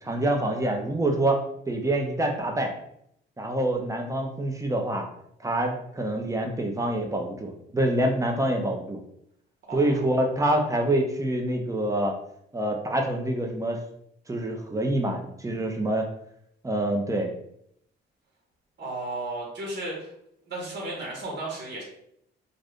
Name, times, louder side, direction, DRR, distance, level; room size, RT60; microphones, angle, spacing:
voice 1, 0.0-2.7 3.4-5.0 5.4-9.0 9.7-12.1 12.5-13.8 14.3-16.1 16.6-17.3, right 1 dB, 15° right, 2 dB, 0.6 m, -26 dB
voice 2, 9.7-10.0 18.8-20.1 20.5-21.8, right 2 dB, 60° right, -3 dB, 1.2 m, -34 dB
2.5 x 2.5 x 3.5 m, 0.72 s
cardioid pair, 90°, 20 cm